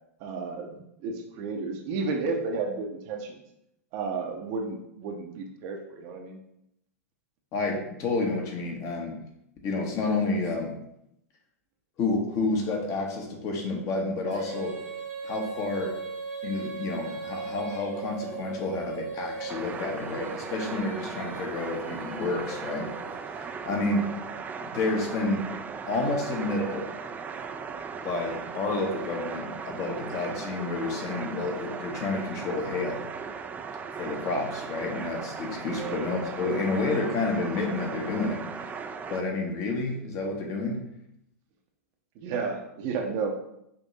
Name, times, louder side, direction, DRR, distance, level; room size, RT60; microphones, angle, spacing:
voice 1, 0.2-3.4 3.9-6.4 35.7-36.1 42.2-43.3, right 4 dB, 45° right, 2 dB, 0.7 m, -32 dB
voice 2, 7.5-9.2 9.6-10.8 12.0-14.8 15.2-16.0 16.4-22.9 23.4-24.1 24.6-25.4 25.9-26.9 28.0-33.0 34.0-38.7 39.1-40.8, left 3 dB, 40° left, 1 dB, 1.0 m, -30 dB
Female singing, 14.3-23.5, right 4 dB, 75° right, 1.4 m, -39 dB
sound 1, 19.5-39.2, right 5 dB, 20° right, 0.3 m, -38 dB
5.3 x 2.8 x 2.7 m, 0.78 s
hypercardioid pair, 100°, 8 cm